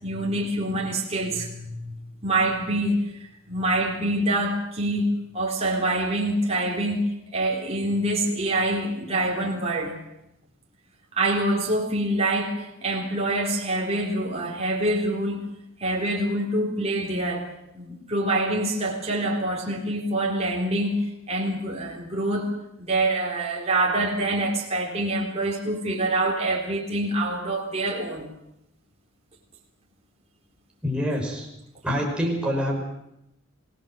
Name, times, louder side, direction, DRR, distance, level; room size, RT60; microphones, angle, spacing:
voice 1, 0.0-2.0 2.2-3.1 3.5-10.0 11.2-15.4 15.8-17.5 17.7-22.5 22.9-28.3, right 1 dB, 30° right, -2 dB, 3.9 m, -25 dB
voice 2, 30.8-31.5 31.8-32.8, equal, 5° right, -1 dB, 5.7 m, -26 dB
25.5 x 17.5 x 7.8 m, 0.84 s
head